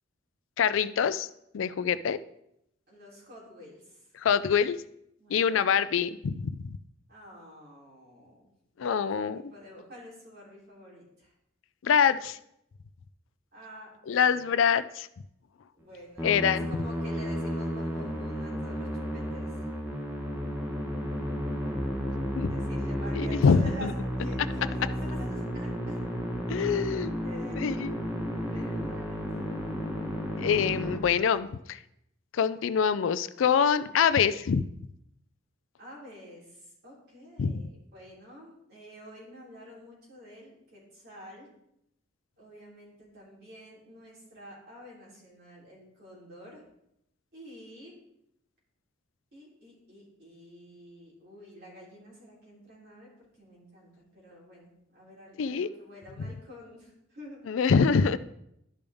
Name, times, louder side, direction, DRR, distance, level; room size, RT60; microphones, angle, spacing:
voice 1, 0.6-1.3 1.5-2.2 4.2-4.8 5.3-6.8 8.8-9.4 11.8-12.4 14.1-15.1 16.2-16.7 22.4-22.5 23.1-23.9 26.5-27.1 27.6-27.9 30.4-31.8 32.3-34.6 37.4-37.6 55.4-55.7 57.5-58.2, left 6 dB, 75° left, 15 dB, 0.4 m, -25 dB
voice 2, 2.9-4.1 5.2-5.7 7.1-8.5 8.8-9.2 9.5-11.3 13.5-14.4 15.7-19.6 22.4-26.0 27.2-27.7 28.4-29.5 35.8-41.5 42.4-46.6 47.3-47.9 49.3-57.4, equal, 55° right, -4 dB, 3.3 m, -48 dB
Musical instrument, 16.2-31.0, equal, 10° right, 1.2 m, -32 dB
12.0 x 5.2 x 3.5 m, 0.77 s
head